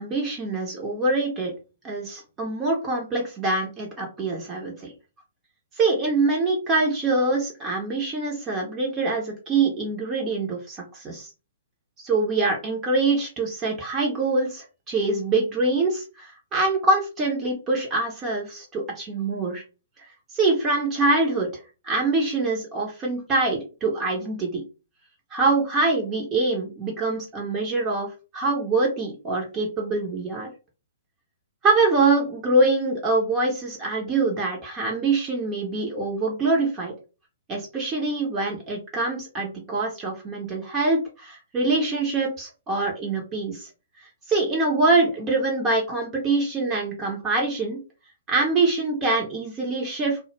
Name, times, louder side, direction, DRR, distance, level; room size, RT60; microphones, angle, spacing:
voice 1, 0.0-1.5 1.8-4.9 5.8-11.3 12.0-19.6 20.3-24.6 25.3-28.1 28.3-30.5 31.6-36.9 37.5-43.7 44.3-47.8 48.3-50.2, right 3 dB, 20° right, -1 dB, 0.6 m, -24 dB
2.1 x 2.0 x 3.1 m, 0.31 s
figure-of-eight pair, 115°, 0 cm